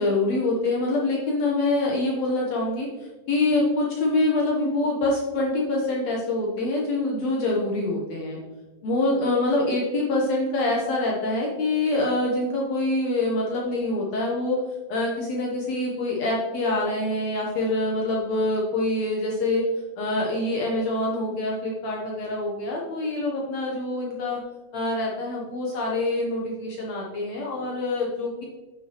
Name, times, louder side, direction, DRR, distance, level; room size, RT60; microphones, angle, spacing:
voice 1, 0.0-2.9 3.3-8.4 8.8-14.6 14.9-19.6 20.0-24.4 24.7-28.5, left 2 dB, 65° left, -2 dB, 1.8 m, -25 dB
9.7 x 6.0 x 3.0 m, 1.1 s
omnidirectional pair, 4.1 m